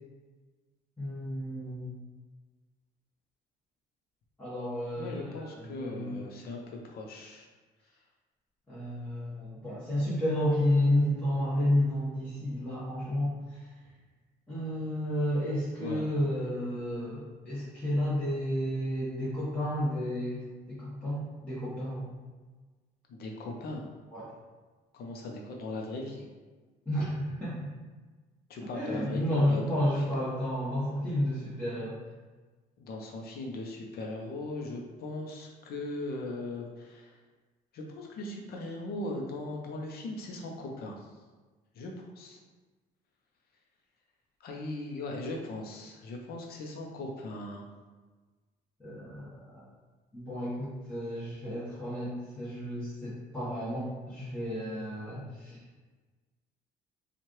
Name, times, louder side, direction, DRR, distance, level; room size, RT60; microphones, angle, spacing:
voice 1, 1.0-1.9 4.4-6.1 8.7-13.6 14.5-22.1 24.1-24.3 26.8-27.7 28.7-32.0 48.8-49.6 50.1-55.6, left 1 dB, 10° left, -11 dB, 1.2 m, -31 dB
voice 2, 5.0-7.5 15.8-16.1 23.1-23.9 24.9-26.3 28.5-29.9 32.8-37.2 37.7-41.0 41.8-42.4 44.4-47.7, left 2 dB, 65° left, 1 dB, 0.7 m, -39 dB
4.5 x 2.4 x 3.1 m, 1.3 s
cardioid pair, 110°, 17 cm